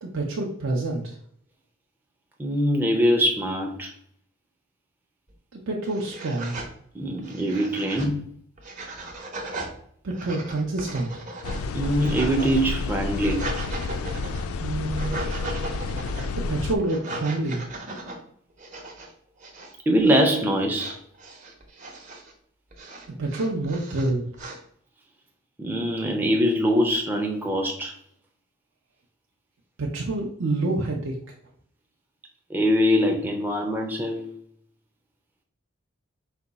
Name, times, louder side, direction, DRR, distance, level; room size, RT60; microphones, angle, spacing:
voice 1, 0.0-1.2 5.5-6.6 10.0-11.3 14.6-15.2 16.4-17.6 23.2-24.2 29.8-31.2, right 2 dB, 70° right, -2 dB, 0.6 m, -27 dB
voice 2, 2.4-3.9 6.9-8.2 11.7-13.5 19.9-21.0 25.6-27.9 32.5-34.3, equal, 10° right, 1 dB, 0.4 m, -23 dB
sound 1, 5.3-5.4 5.8-6.7 7.2-8.1 8.6-9.7 10.1-12.6 13.0-14.5 14.9-16.3 16.8-18.2 18.6-19.1 19.4-19.7 20.0-20.4 20.7-22.3 22.7-24.6, right 2 dB, 35° right, 0.8 m, -37 dB
sound 2, 11.4-16.8, left 3 dB, 90° left, 0.4 m, -30 dB
4.9 x 2.3 x 3.9 m, 0.64 s
head